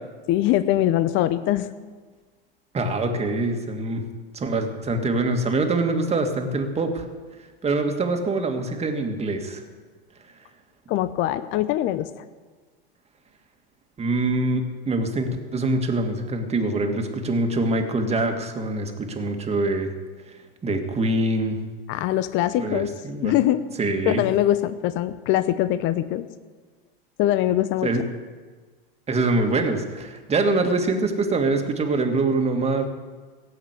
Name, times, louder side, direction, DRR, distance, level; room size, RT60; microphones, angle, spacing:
voice 1, 0.3-1.7 10.9-12.1 21.9-22.9 23.2-23.6 24.1-26.2 27.2-28.0, left 13 dB, 45° left, 13 dB, 0.8 m, -22 dB
voice 2, 2.7-4.0 4.3-7.1 7.6-9.6 14.0-19.9 20.6-21.6 22.6-23.3 23.8-24.2 27.8-28.0 29.1-32.9, right 2 dB, 20° right, 5 dB, 2.1 m, -24 dB
16.5 x 7.9 x 8.2 m, 1.4 s
hypercardioid pair, 100°, 29 cm